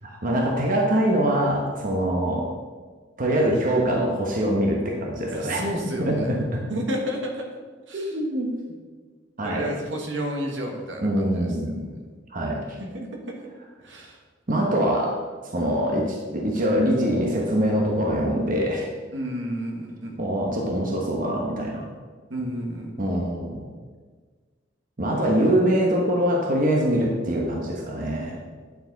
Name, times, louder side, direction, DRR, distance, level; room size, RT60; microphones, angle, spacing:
voice 1, 0.0-2.5 3.2-5.6 6.0-6.6 7.9-8.5 9.4-9.7 11.0-11.9 12.3-12.8 14.5-15.2 15.4-18.9 20.2-21.9 23.0-23.7 25.0-28.4, right 1 dB, 45° right, 0 dB, 1.1 m, -24 dB
voice 2, 5.3-6.3 6.7-7.5 7.9-8.1 9.4-11.2 12.8-13.3 13.8-14.2 19.1-20.2 22.3-23.1, equal, 75° right, 1 dB, 1.5 m, -31 dB
9.1 x 7.0 x 4.0 m, 1.5 s
head